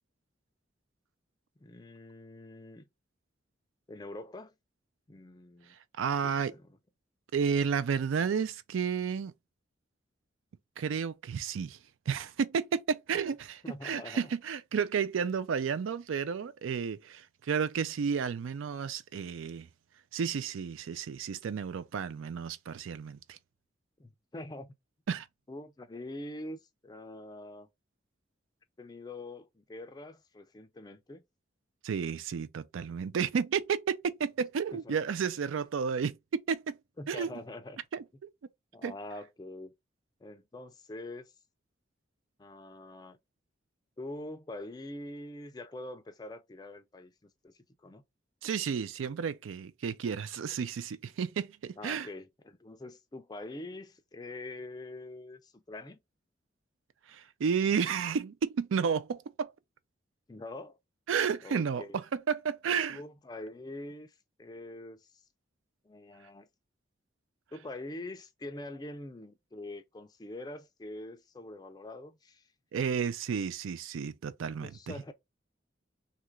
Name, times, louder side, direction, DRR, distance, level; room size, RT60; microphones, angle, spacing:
voice 1, 1.6-2.8 3.9-4.5 5.1-5.7 6.2-6.7 13.6-14.3 24.0-24.7 25.5-27.7 28.8-31.2 34.7-35.0 37.0-37.8 38.7-39.7 40.2-41.3 42.4-43.2 44.0-48.0 51.8-56.0 60.3-60.8 61.4-62.0 62.9-65.2 65.8-66.5 67.5-72.5 74.6-75.1, left 2 dB, 20° left, 0.3 m, -44 dB
voice 2, 6.0-6.5 7.3-9.3 10.8-11.8 12.1-19.7 20.1-23.4 25.1-25.3 31.8-36.8 37.1-37.4 37.9-38.0 38.8-38.9 48.4-52.1 57.1-59.5 61.1-63.0 72.7-74.9, right 6 dB, 90° right, 0.4 m, -32 dB
2.8 x 2.4 x 3.1 m
head